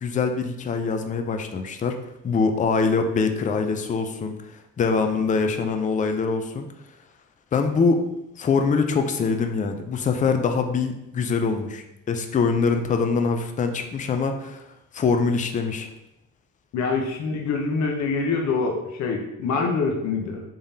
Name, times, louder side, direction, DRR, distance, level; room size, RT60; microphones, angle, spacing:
voice 1, 0.0-2.0 2.2-4.3 4.8-6.7 7.5-8.0 8.4-14.6 14.9-15.9, left 4 dB, 25° left, 6 dB, 0.4 m, -23 dB
voice 2, 16.7-20.4, left 4 dB, 65° left, 1 dB, 0.7 m, -25 dB
3.6 x 3.4 x 2.7 m, 0.88 s
cardioid pair, 90°, 30 cm